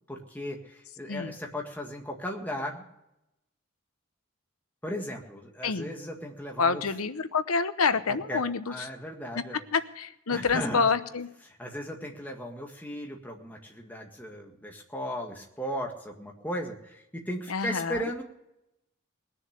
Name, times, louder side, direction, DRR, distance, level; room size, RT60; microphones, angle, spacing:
voice 1, 0.1-2.8 4.8-6.8 8.1-9.6 10.3-10.9 11.5-18.2, equal, 10° left, 0 dB, 1.8 m, -36 dB
voice 2, 6.6-8.9 9.7-11.3 17.5-18.1, left 5 dB, 85° left, 12 dB, 0.9 m, -27 dB
20.5 x 7.0 x 6.6 m, 0.86 s
head